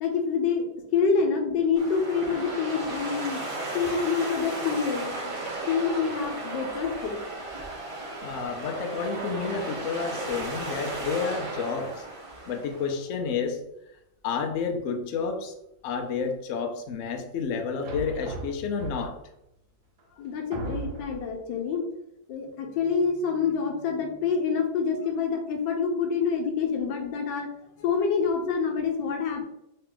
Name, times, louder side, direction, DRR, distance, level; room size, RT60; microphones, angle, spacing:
voice 1, 0.0-0.7 0.9-3.4 3.7-5.4 5.7-7.2 20.2-21.8 22.3-27.5 27.8-29.4, left 5 dB, 85° left, 3 dB, 1.4 m, -27 dB
sound 1, 1.8-12.9, right 2 dB, 35° right, 0.5 m, -35 dB
voice 2, 7.9-12.0 12.5-13.6 14.2-15.5 15.8-19.2, left 5 dB, 70° left, 5 dB, 0.7 m, -30 dB
sound 2, 17.8-19.3 20.0-20.1 20.5-21.4, right 4 dB, 75° right, 1.2 m, -37 dB
3.2 x 2.8 x 3.8 m, 0.83 s
omnidirectional pair, 1.9 m